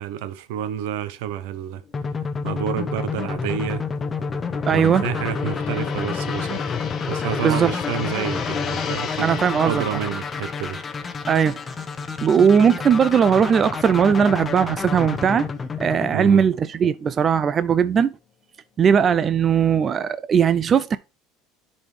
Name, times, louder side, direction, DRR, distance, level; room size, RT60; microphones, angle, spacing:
voice 1, 0.0-1.8 2.4-3.9 4.7-6.6 7.1-9.4 9.6-10.8 16.1-16.4, right 10 dB, 80° right, 0.7 m, -29 dB
Gong, 1.6-14.1 14.4-14.7, left 7 dB, 40° left, 1.3 m, -35 dB
sound 1, 1.9-16.9, left 5 dB, 25° left, 0.9 m, -29 dB
voice 2, 4.7-5.0 7.4-7.7 9.2-10.0 11.3-11.6 12.2-15.4 15.8-18.1 18.8-21.0, right 7 dB, 35° right, 0.4 m, -18 dB
10.5 x 4.2 x 3.3 m
supercardioid pair, 105°, 0 cm